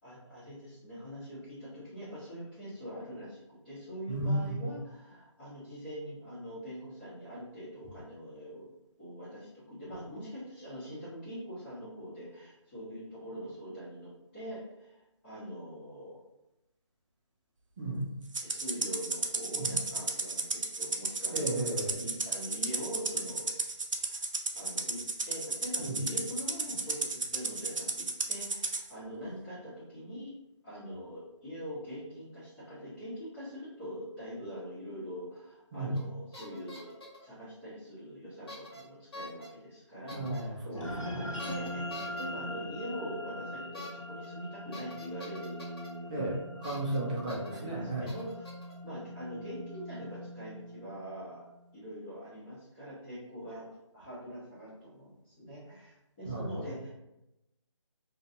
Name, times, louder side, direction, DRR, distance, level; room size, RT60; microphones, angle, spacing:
voice 1, 0.0-16.2 18.4-21.6 21.9-23.5 24.1-24.2 24.5-25.0 25.2-30.3 30.6-46.3 47.1-48.5 48.8-51.4 51.7-53.6 53.9-56.9, equal, 20° left, -15 dB, 1.0 m, -43 dB
voice 2, 4.1-4.7 17.8-18.0 19.5-19.7 21.3-22.1 25.8-26.0 35.7-35.9 40.1-41.2 46.1-48.1 56.2-56.6, right 1 dB, 15° right, -6 dB, 0.4 m, -34 dB
Rattle (instrument), 18.3-28.8, right 3 dB, 90° right, 0.4 m, -33 dB
sound 1, 35.9-36.1 36.3-37.2 38.5-38.8 39.1-39.5 40.1-40.4 41.4-42.2 43.7-43.9 44.2-44.3 44.7-45.9 46.6-47.0 47.3-47.6 48.1-48.7, left 1 dB, 50° left, 1.1 m, -46 dB
sound 2, 40.7-51.4, left 1 dB, 85° left, 0.7 m, -42 dB
2.5 x 2.3 x 2.7 m, 0.91 s
figure-of-eight pair, 155°, 16 cm